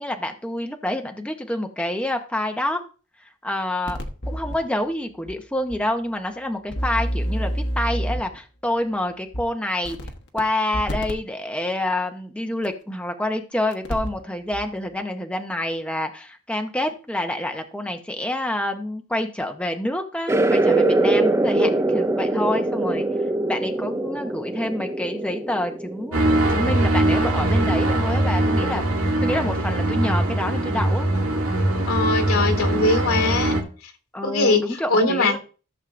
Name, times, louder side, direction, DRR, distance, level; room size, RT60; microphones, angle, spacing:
voice 1, 0.0-2.8 3.4-4.0 4.3-10.0 10.3-23.1 23.5-28.9 29.2-31.1 34.1-35.4, left 1 dB, 5° left, 4 dB, 0.8 m, -27 dB
sound 1, 3.9-4.6 5.3-5.4 5.7-5.8 6.7-8.4 9.3-9.4 9.8-10.4 10.7-11.1 12.6-12.7 13.7-14.2 14.5-14.6, equal, 55° left, 1.2 m, -27 dB
sound 2, 20.3-26.4, right 2 dB, 15° right, 0.4 m, -22 dB
sound 3, 26.1-33.6, right 1 dB, 75° right, 2.3 m, -21 dB
voice 2, 31.9-33.6 34.2-34.6 34.9-35.4, left 2 dB, 80° left, 5 dB, 2.1 m, -21 dB
15.0 x 7.3 x 2.5 m, 0.37 s
head